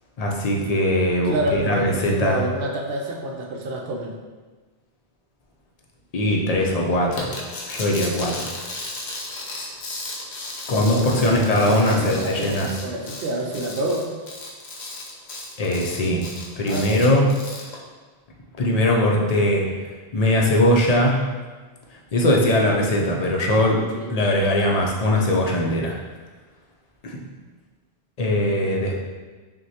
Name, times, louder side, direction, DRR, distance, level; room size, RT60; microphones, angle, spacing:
voice 1, 0.2-2.4 6.1-7.3 7.7-8.5 10.7-12.7 15.6-16.2 16.6-17.2 18.6-19.6 20.1-21.2 22.1-26.0 27.0-27.2 28.2-29.1, left 1 dB, 45° left, -1 dB, 0.5 m, -20 dB
voice 2, 1.2-4.2 10.7-14.1 16.7-17.1 23.9-24.1 28.6-28.8, right 1 dB, 60° right, 0 dB, 0.8 m, -28 dB
sound 1, 7.1-17.8, left 2 dB, 75° left, 1.0 m, -35 dB
6.0 x 2.2 x 2.8 m, 1.3 s
omnidirectional pair, 1.1 m